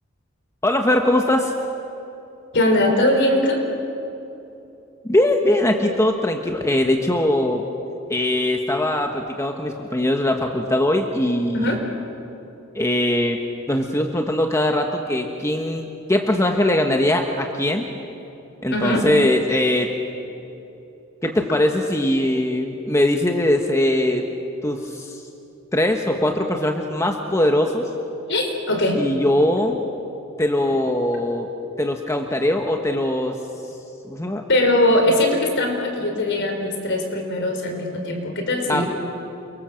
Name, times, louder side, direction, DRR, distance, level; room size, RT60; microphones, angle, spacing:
voice 1, 0.6-1.5 5.0-7.6 8.1-11.7 12.7-13.4 13.7-17.9 18.6-19.9 21.2-24.2 24.6-25.2 25.7-27.9 28.9-29.8 30.4-31.5 31.8-33.4 34.1-34.4 38.7-38.8, left 1 dB, 15° left, 3 dB, 1.4 m, -21 dB
voice 2, 2.5-3.6 11.5-11.8 18.7-19.1 28.3-29.0 34.5-38.9, left 1 dB, 60° left, 3 dB, 4.8 m, -20 dB
29.0 x 24.0 x 7.7 m, 2.9 s
head